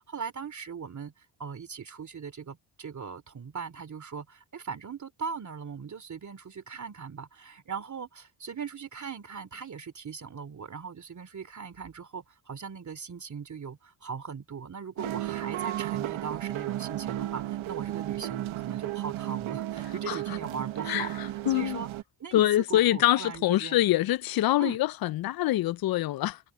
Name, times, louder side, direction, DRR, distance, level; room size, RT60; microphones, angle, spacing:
voice 1, 0.0-21.9 22.2-23.8 24.6-24.8, right 6 dB, 40° right, 2.9 m, -39 dB
sound 1, 15.0-22.0, right 14 dB, 85° right, 1.3 m, -34 dB
voice 2, 21.5-21.8 22.3-26.4, left 14 dB, 55° left, 0.5 m, -25 dB
cardioid pair, 115°, 46 cm